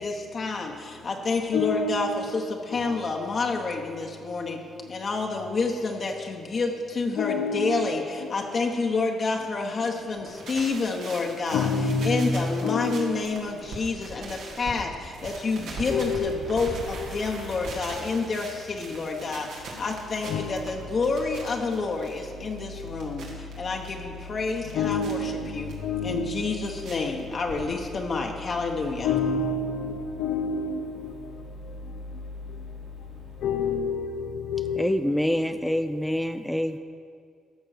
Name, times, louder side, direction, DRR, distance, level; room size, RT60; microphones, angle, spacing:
voice 1, 0.0-4.6 4.9-11.7 12.0-25.7 26.0-29.1, left 4 dB, 45° left, 1.1 m, -29 dB
voice 2, 1.5-2.3 2.7-2.9 7.2-8.4 11.5-13.4 15.9-17.1 20.2-20.6 24.7-26.6 29.0-31.1 33.4-34.9, left 4 dB, 80° left, 0.8 m, -28 dB
sound 1, 10.1-14.8 15.1-23.9 24.3-25.1 25.7-25.8 26.2-26.9 27.2-28.0 28.3-28.4 28.6-28.7 28.9-29.0, right 3 dB, 85° right, 2.1 m, -41 dB
sound 2, 15.7-33.7, left 2 dB, 60° right, 3.3 m, -43 dB
voice 3, 34.8-36.8, equal, 5° left, 0.4 m, -26 dB
14.0 x 5.4 x 6.6 m
cardioid pair, 90°, 0 cm